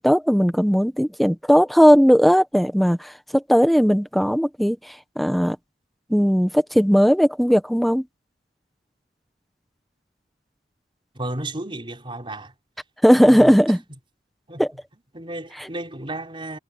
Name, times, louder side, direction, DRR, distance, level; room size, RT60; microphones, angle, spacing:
voice 1, 0.0-4.8 5.2-5.6 6.1-8.0 13.0-13.8 14.6-14.7, equal, ahead, 1.3 m, -17 dB
voice 2, 11.1-12.5 13.3-13.5 14.5-14.6 15.1-16.6, right 1 dB, 30° right, 5.0 m, -33 dB
head